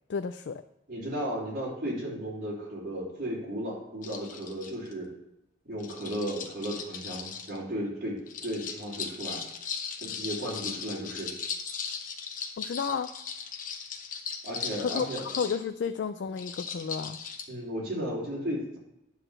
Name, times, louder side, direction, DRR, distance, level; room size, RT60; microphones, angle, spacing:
voice 1, 0.1-0.6 10.0-10.2 12.6-13.1 14.8-17.2, left 6 dB, 65° left, 9 dB, 0.3 m, -32 dB
voice 2, 0.9-5.1 5.6-8.2 8.4-9.4 10.0-11.3 14.4-15.2 17.5-18.8, equal, 50° right, -6 dB, 3.5 m, -34 dB
sound 1, 4.0-4.9 5.8-7.6 8.3-15.6 16.4-17.4, left 6 dB, 45° left, 0.9 m, -38 dB
9.9 x 4.0 x 6.5 m, 0.86 s
head